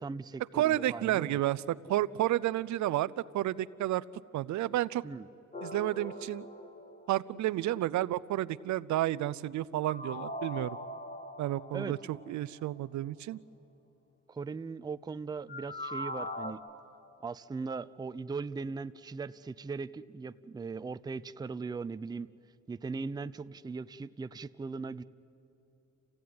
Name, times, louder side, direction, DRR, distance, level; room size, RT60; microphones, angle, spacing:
voice 1, 0.0-1.4 5.0-5.3 11.7-11.9 14.3-16.6 17.2-22.3 22.7-25.0, right 4 dB, 15° right, 14 dB, 0.4 m, -39 dB
voice 2, 0.5-4.0 4.3-5.0 5.6-6.5 7.1-10.8 11.4-13.4, right 14 dB, 70° right, 18 dB, 0.6 m, -31 dB
sound 1, 5.5-7.6 9.8-12.5 15.5-16.5, left 1 dB, 25° left, 2.1 m, -41 dB
29.0 x 15.5 x 9.5 m, 2.9 s
cardioid pair, 90°, 30 cm